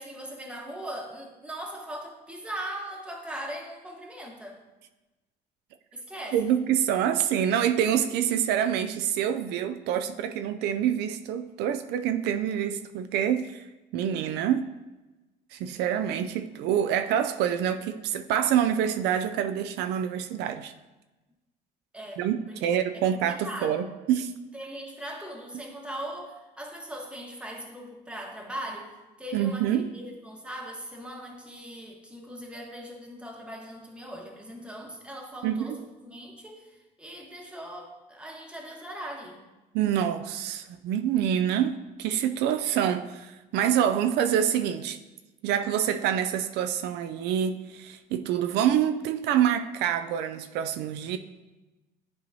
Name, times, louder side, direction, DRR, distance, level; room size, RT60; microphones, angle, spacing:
voice 1, 0.0-4.6 5.9-6.4 21.9-22.2 22.5-23.7 24.5-39.4, right 1 dB, 5° right, 0 dB, 1.2 m, -40 dB
voice 2, 6.3-13.7 13.9-14.7 15.5-20.7 22.2-24.3 29.3-29.9 35.4-35.8 39.7-45.0 45.4-51.2, right 9 dB, 85° right, 9 dB, 0.4 m, -26 dB
10.5 x 4.6 x 2.7 m, 1.1 s
cardioid pair, 110°, 17 cm